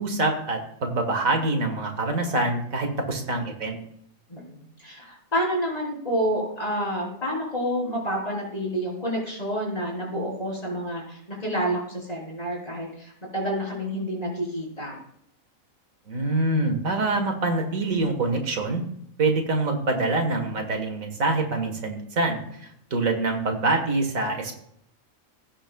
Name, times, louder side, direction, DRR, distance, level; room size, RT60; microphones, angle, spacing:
voice 1, 0.0-3.8 16.1-18.8 19.2-24.6, right 2 dB, 75° right, 4 dB, 1.9 m, -25 dB
voice 2, 4.3-15.0, equal, 30° left, -3 dB, 3.8 m, -29 dB
16.5 x 9.9 x 2.3 m, 0.70 s
omnidirectional pair, 1.4 m